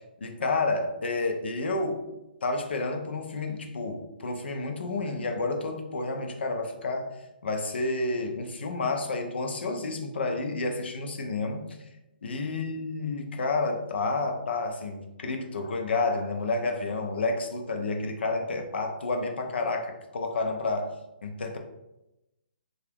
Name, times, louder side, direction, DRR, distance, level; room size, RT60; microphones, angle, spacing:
voice 1, 0.2-2.0 2.4-7.1 7.4-11.8 12.2-20.9 21.2-21.6, left 3 dB, 85° left, 3 dB, 0.6 m, -30 dB
2.8 x 2.4 x 3.4 m, 0.93 s
hypercardioid pair, 175°, 6 cm